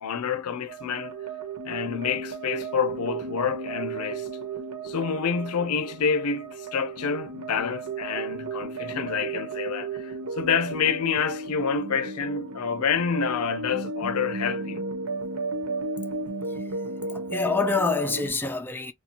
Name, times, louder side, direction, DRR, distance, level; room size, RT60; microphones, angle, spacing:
voice 1, 0.0-1.2 1.6-4.3 4.8-14.8, left 6 dB, 80° left, 0.5 m, -28 dB
sound 1, 0.7-18.3, right 3 dB, 85° right, 1.1 m, -34 dB
voice 2, 17.1-18.9, left 4 dB, 10° left, 0.4 m, -26 dB
2.8 x 2.2 x 4.1 m
head